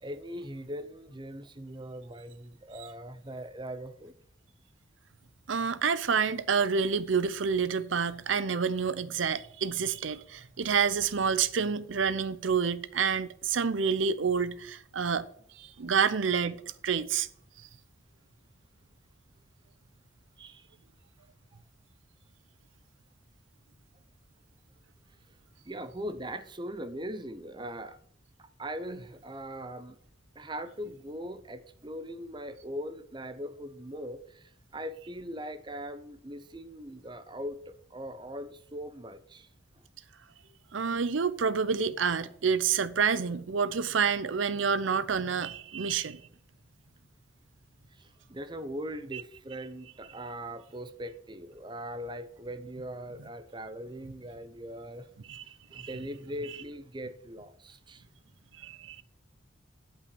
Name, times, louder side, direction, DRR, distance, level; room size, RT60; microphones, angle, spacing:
voice 1, 0.0-4.1 20.4-20.7 21.5-21.6 25.6-28.0 28.4-30.0 30.3-39.5 47.9-55.1 55.7-58.0, equal, 25° right, 0.7 m, -40 dB
voice 2, 5.5-15.3 15.6-17.3 40.7-46.2 49.1-49.2 55.3-55.5 55.7-55.9 58.6-59.0, right 6 dB, 80° right, 0.6 m, -28 dB
8.0 x 5.6 x 6.8 m
head